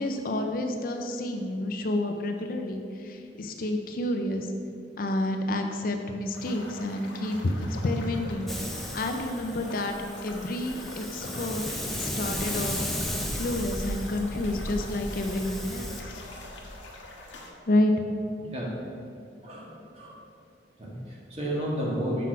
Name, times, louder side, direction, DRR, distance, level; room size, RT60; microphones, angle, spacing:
voice 1, 0.0-4.5 5.0-10.0 10.2-12.8 13.3-16.2 17.7-17.9, left 1 dB, 50° left, 5 dB, 0.5 m, -29 dB
sound 1, 6.3-17.5, left 1 dB, 85° left, 1.1 m, -41 dB
Hiss, 8.5-16.0, left 1 dB, ahead, 0.5 m, -35 dB
voice 2, 19.4-20.1 20.8-22.3, equal, 35° right, -4 dB, 1.6 m, -32 dB
5.9 x 5.8 x 4.6 m, 2.5 s
head